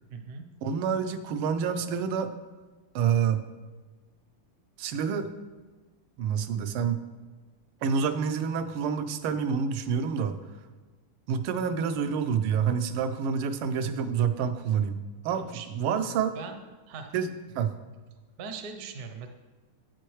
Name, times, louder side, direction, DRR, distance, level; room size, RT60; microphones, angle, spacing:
voice 1, 0.1-0.5 15.3-15.7 16.3-16.6 16.9-17.1 18.4-19.3, right 5 dB, 60° right, 6 dB, 1.0 m, -40 dB
voice 2, 0.6-2.3 2.9-3.5 4.8-5.3 6.2-7.0 7.8-10.4 11.3-16.4 17.1-17.3 17.5-17.8, right 7 dB, 80° right, 10 dB, 1.5 m, -28 dB
9.0 x 8.3 x 3.2 m, 1.3 s
omnidirectional pair, 2.4 m